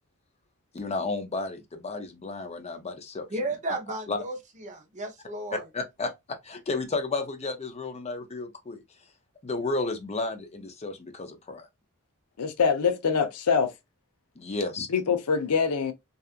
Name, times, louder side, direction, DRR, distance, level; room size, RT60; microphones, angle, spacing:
voice 1, 0.7-3.3 4.1-4.2 5.7-8.8 9.4-11.7 14.4-14.9, left 3 dB, 30° left, 0.5 m, -32 dB
voice 2, 3.3-5.6, right 2 dB, 35° right, 0.6 m, -34 dB
voice 3, 12.4-13.7 14.9-15.9, left 6 dB, 90° left, 0.5 m, -24 dB
2.7 x 2.3 x 2.3 m
head